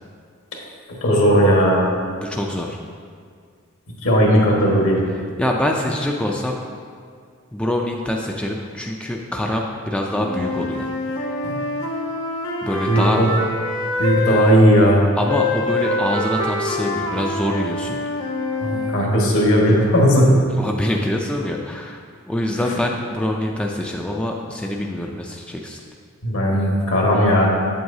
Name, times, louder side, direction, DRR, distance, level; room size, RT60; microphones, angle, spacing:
voice 1, 0.9-1.9 4.0-5.0 11.4-11.6 12.9-13.3 14.0-15.0 18.6-20.4 22.7-22.8 26.2-27.5, equal, 65° left, -2 dB, 1.5 m, -16 dB
voice 2, 2.2-2.8 5.4-6.6 7.5-10.9 12.6-13.2 15.2-18.0 20.6-22.0 22.3-25.8, left 1 dB, 5° left, 0 dB, 0.3 m, -24 dB
Wind instrument woodwind instrument, 10.2-14.6 15.3-19.0, left 2 dB, 90° left, 1.2 m, -25 dB
8.0 x 7.7 x 2.7 m, 2.1 s
head